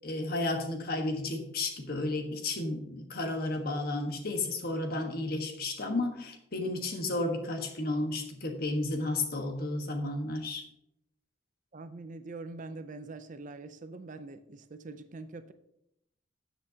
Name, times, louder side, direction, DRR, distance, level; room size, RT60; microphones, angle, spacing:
voice 1, 0.0-10.6, left 2 dB, 50° left, 4 dB, 1.4 m, -32 dB
voice 2, 11.7-15.5, right 3 dB, 40° right, 11 dB, 0.5 m, -44 dB
13.0 x 7.6 x 2.8 m, 0.80 s
head